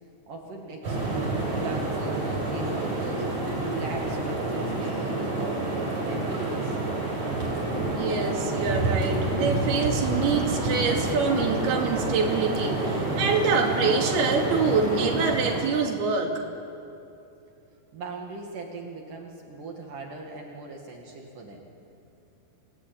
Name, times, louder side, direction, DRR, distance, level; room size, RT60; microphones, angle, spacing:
voice 1, 0.3-3.3 3.6-6.8 17.9-21.7, right 3 dB, 60° right, 1 dB, 3.6 m, -39 dB
sound 1, 0.8-15.6, right 2 dB, 40° right, 6.9 m, -28 dB
voice 2, 7.9-16.4, right 4 dB, 90° right, 1 dB, 4.5 m, -25 dB
29.5 x 18.5 x 9.2 m, 2.7 s
omnidirectional pair, 4.4 m